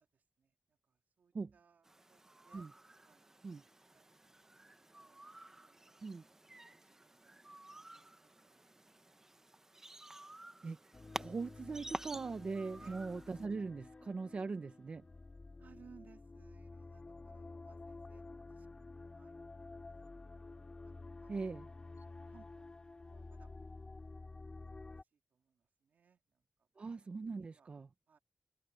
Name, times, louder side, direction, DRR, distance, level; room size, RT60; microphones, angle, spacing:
voice 1, 0.4-2.2 2.4-2.6 3.0-5.2 5.6-6.1 6.6-8.6 9.1-9.2 9.9-10.0 12.7-13.0 15.6-20.6 21.2-23.5 24.0-24.2 24.5-24.6 25.1-26.2 27.0-27.7 28.1-28.2, right 6 dB, 85° right, 3.0 m, -66 dB
sound 1, 1.8-13.5, right 2 dB, 15° right, 0.7 m, -51 dB
sound 2, 10.9-25.0, left 3 dB, 30° left, 2.1 m, -51 dB
voice 2, 11.2-15.0 21.3-21.7 26.8-27.9, right 4 dB, 45° right, 0.8 m, -41 dB
open air
wide cardioid pair, 160°, 3 cm